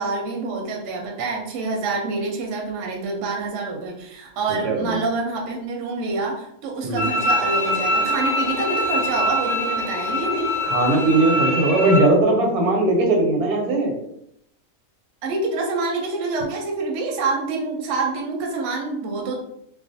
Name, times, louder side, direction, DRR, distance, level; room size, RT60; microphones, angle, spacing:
voice 1, 0.0-10.5 15.2-19.4, right 3 dB, 65° right, 0 dB, 0.8 m, -26 dB
voice 2, 4.6-5.0 6.8-7.2 10.6-14.0, right 2 dB, 85° right, 1 dB, 1.1 m, -19 dB
Bowed string instrument, 7.0-12.0, left 1 dB, 55° left, 0.7 m, -23 dB
2.4 x 2.2 x 2.6 m, 0.75 s
omnidirectional pair, 1.5 m